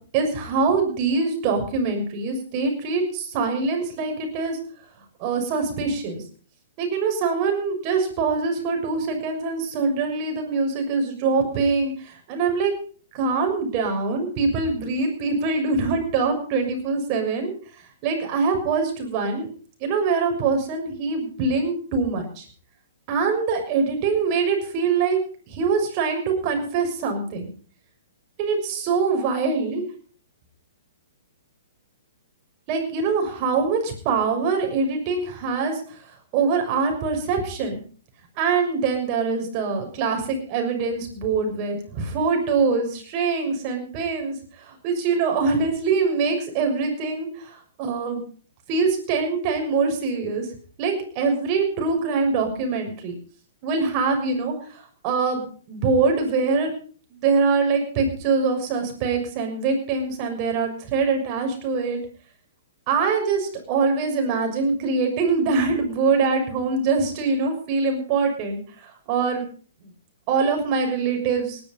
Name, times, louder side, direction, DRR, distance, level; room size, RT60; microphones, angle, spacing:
voice 1, 0.1-4.6 5.2-6.2 6.8-12.7 13.1-17.5 18.0-19.5 19.8-22.4 23.1-25.2 25.5-27.5 28.4-29.8 32.7-36.0 36.3-37.8 38.4-48.2 48.7-50.5 50.8-53.1 53.6-56.7 57.1-62.0 62.9-69.5 69.8-69.9 70.3-71.6, right 4 dB, 40° right, 4 dB, 6.5 m, -24 dB
18.5 x 11.5 x 5.4 m, 0.43 s
hypercardioid pair, 125°, 0 cm